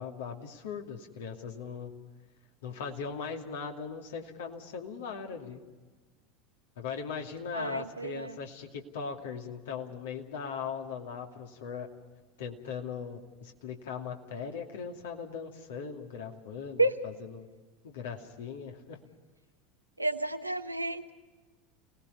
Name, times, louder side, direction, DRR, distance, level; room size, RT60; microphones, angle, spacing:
voice 1, 0.0-1.9 2.6-5.6 6.8-11.9 12.4-17.5 17.8-19.0, left 6 dB, 65° left, 2 dB, 2.6 m, -39 dB
voice 2, 7.5-8.4 16.8-16.9 20.0-21.1, right 2 dB, 90° right, 8 dB, 1.1 m, -30 dB
29.5 x 19.0 x 5.5 m, 1.3 s
figure-of-eight pair, 80°, 0 cm